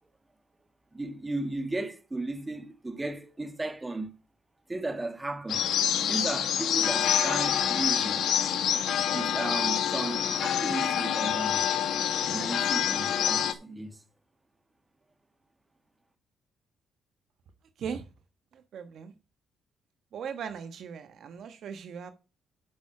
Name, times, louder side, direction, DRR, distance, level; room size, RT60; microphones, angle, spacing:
voice 1, 0.9-4.1 4.7-5.7 6.1-8.3 9.1-11.7 12.3-14.0, right 2 dB, 15° right, 1.9 m, -35 dB
sound 1, 5.5-13.5, left 9 dB, 75° left, 1.6 m, -27 dB
voice 2, 18.5-19.1 20.1-22.1, right 7 dB, 65° right, 1.3 m, -38 dB
9.0 x 6.2 x 5.9 m
cardioid pair, 90°, 0 cm